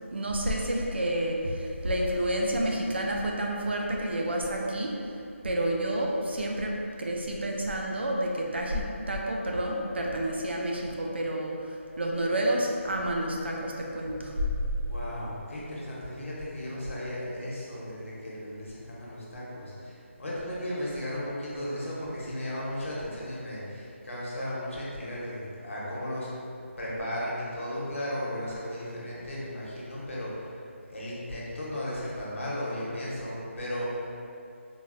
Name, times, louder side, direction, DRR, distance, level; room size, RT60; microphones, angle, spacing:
voice 1, 0.1-4.9 5.4-6.7 7.0-14.3, right 1 dB, 50° right, -1 dB, 0.4 m, -29 dB
voice 2, 14.8-26.3 26.8-30.5 30.9-34.1, left 1 dB, 70° left, -7 dB, 0.9 m, -35 dB
3.8 x 2.1 x 2.5 m, 2.6 s
figure-of-eight pair, 180°, 7 cm